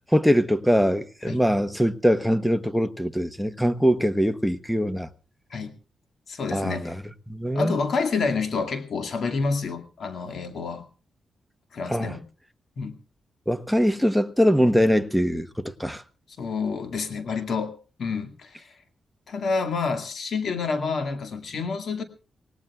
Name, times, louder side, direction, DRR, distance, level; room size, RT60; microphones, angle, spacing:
voice 1, 0.1-5.1 6.5-6.9 7.3-7.8 11.9-12.1 13.5-16.0, equal, ahead, 1.0 m, -22 dB
voice 2, 6.3-7.0 7.5-10.9 11.7-12.2 12.8-13.0 16.4-18.7 19.3-22.0, left 4 dB, 65° left, 2.1 m, -28 dB
25.0 x 18.0 x 2.4 m
cardioid pair, 75°, 0 cm